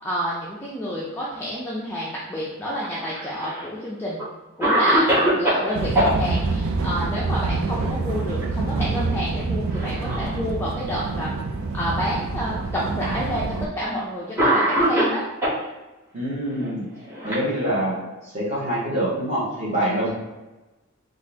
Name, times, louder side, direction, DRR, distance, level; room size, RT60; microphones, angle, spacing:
voice 1, 0.0-4.2 4.6-11.4 11.7-15.2 20.0-20.1, equal, 10° left, -6 dB, 0.4 m, -29 dB
Cough, 2.8-3.7 4.2-4.3 4.6-6.1 8.0-8.4 8.8-8.9 9.7-10.4 11.2-11.3 12.3-12.4 13.6-13.7 14.4-15.6 16.6-18.0, right 1 dB, 10° right, 1.1 m, -22 dB
sound 1, 5.7-13.7, right 3 dB, 80° right, 0.4 m, -26 dB
voice 2, 16.1-16.9 17.2-17.9 18.2-20.1, right 1 dB, 35° right, -9 dB, 1.4 m, -25 dB
4.0 x 2.5 x 2.8 m, 1.1 s
head